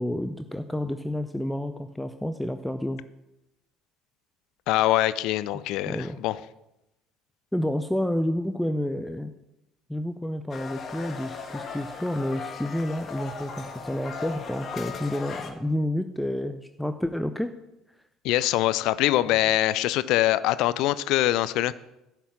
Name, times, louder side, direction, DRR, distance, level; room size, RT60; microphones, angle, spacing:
voice 1, 0.0-3.0 5.9-6.2 7.5-9.3 9.9-17.5, left 1 dB, 5° left, 9 dB, 0.6 m, -29 dB
voice 2, 4.7-6.4 18.2-21.7, left 15 dB, 55° left, 17 dB, 0.4 m, -23 dB
sound 1, 10.5-15.5, left 5 dB, 35° left, 1.3 m, -37 dB
11.0 x 5.9 x 7.0 m, 0.92 s
figure-of-eight pair, 60°, 0 cm